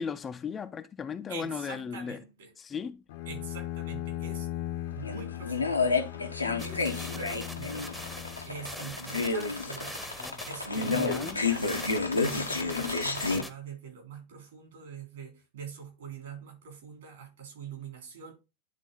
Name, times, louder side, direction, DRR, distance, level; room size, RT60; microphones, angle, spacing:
voice 1, 0.0-2.2 2.6-3.0 10.2-10.5 10.8-11.5, left 6 dB, 20° left, 0.5 m, -36 dB
voice 2, 1.3-2.5 3.3-4.5 4.9-6.0 6.6-7.9 8.4-10.0 10.4-18.3, right 6 dB, 60° right, 3.2 m, -44 dB
Bowed string instrument, 3.1-8.9, left 14 dB, 50° left, 0.7 m, -38 dB
sound 1, 5.0-13.4, left 4 dB, 80° left, 0.9 m, -30 dB
sound 2, 6.6-13.5, equal, ahead, 0.8 m, -43 dB
10.5 x 3.7 x 3.7 m
figure-of-eight pair, 90°, 0 cm